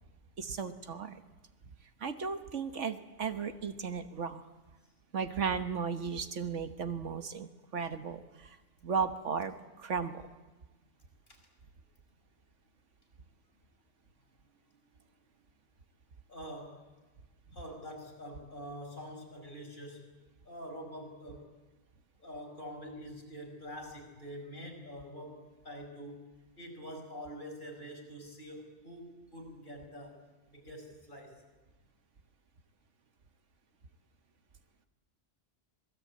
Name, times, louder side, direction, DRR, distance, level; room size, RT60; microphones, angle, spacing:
voice 1, 0.4-1.2 2.0-4.4 5.1-8.6 8.8-10.3, right 6 dB, 90° right, 9 dB, 1.6 m, -35 dB
voice 2, 16.3-16.8 17.5-20.1 20.4-21.5 22.2-26.2 26.6-30.2 30.5-31.4, equal, 45° left, 2 dB, 6.2 m, -46 dB
26.5 x 20.0 x 8.7 m, 1.2 s
omnidirectional pair, 1.2 m